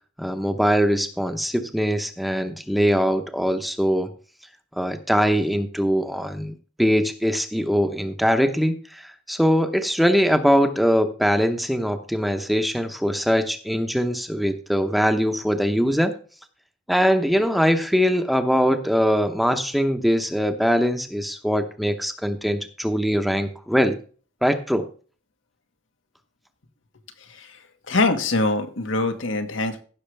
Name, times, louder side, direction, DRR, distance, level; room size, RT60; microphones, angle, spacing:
voice 1, 0.2-4.1 4.8-16.1 16.9-24.0 24.4-24.9, equal, ahead, 7 dB, 0.8 m, -22 dB
voice 2, 27.9-29.8, left 2 dB, 85° left, 6 dB, 1.5 m, -23 dB
15.5 x 6.3 x 3.4 m, 0.40 s
head